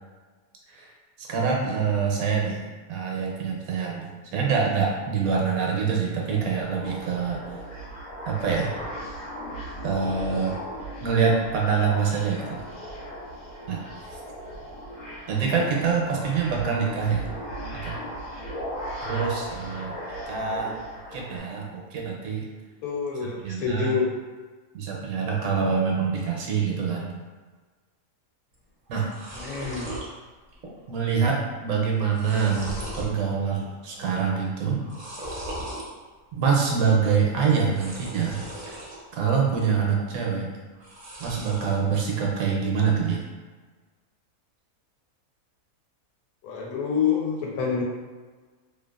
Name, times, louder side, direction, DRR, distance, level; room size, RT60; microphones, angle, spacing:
voice 1, 1.2-2.6 2.9-7.4 8.3-8.7 9.8-10.5 11.0-12.5 13.7-13.8 15.3-17.2 17.7-18.0 19.1-19.9 20.3-20.7 21.1-22.4 23.4-23.9 24.7-27.1 28.9-29.1 30.9-34.8 36.3-38.4 39.1-40.5 41.2-43.2, right 6 dB, 80° right, -1 dB, 1.0 m, -25 dB
sound 1, 6.1-21.4, equal, 65° left, 1.1 m, -37 dB
voice 2, 22.8-24.1 29.3-29.9 46.4-47.8, left 6 dB, 90° left, -2 dB, 1.1 m, -27 dB
sound 2, 28.5-28.6 28.9-30.1 30.5-30.9 31.2-31.3 31.9-33.1 33.6-34.1 34.8-35.9 37.6-39.0 39.4-40.0 40.7-41.8, right 1 dB, 60° right, 0.5 m, -38 dB
2.7 x 2.3 x 2.3 m, 1.4 s
omnidirectional pair, 1.5 m